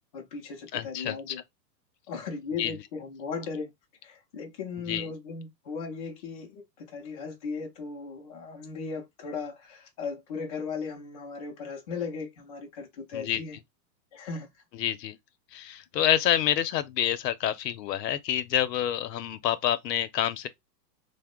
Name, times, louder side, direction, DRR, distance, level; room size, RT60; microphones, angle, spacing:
voice 1, 0.1-1.4 2.1-3.7 4.0-13.6 14.1-14.5, left 5 dB, 25° left, 0.3 m, -37 dB
voice 2, 0.7-1.3 2.6-2.7 4.9-5.1 13.1-13.4 14.8-15.2 15.5-20.5, left 11 dB, 75° left, 0.7 m, -28 dB
2.8 x 2.1 x 3.5 m
hypercardioid pair, 145°, 50 cm